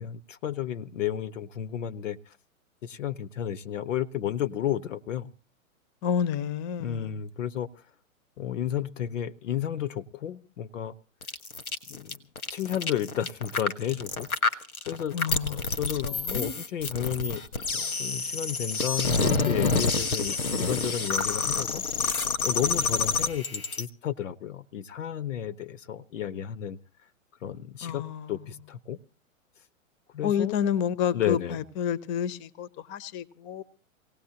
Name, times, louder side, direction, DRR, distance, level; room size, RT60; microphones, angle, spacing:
voice 1, 0.0-2.4 2.8-5.3 6.8-7.7 8.4-10.9 11.9-12.2 12.5-15.1 15.5-17.4 17.7-26.8 27.4-28.0 28.3-29.0 30.1-30.6 31.1-31.6, left 10 dB, 60° left, 0.9 m, -32 dB
voice 2, 6.0-7.2 15.1-15.6 16.0-16.5 27.8-28.3 30.2-33.6, left 8 dB, 25° left, 0.9 m, -29 dB
sound 1, 11.2-23.8, left 4 dB, 85° left, 1.5 m, -28 dB
24.5 x 18.0 x 2.8 m
hypercardioid pair, 115°, 42 cm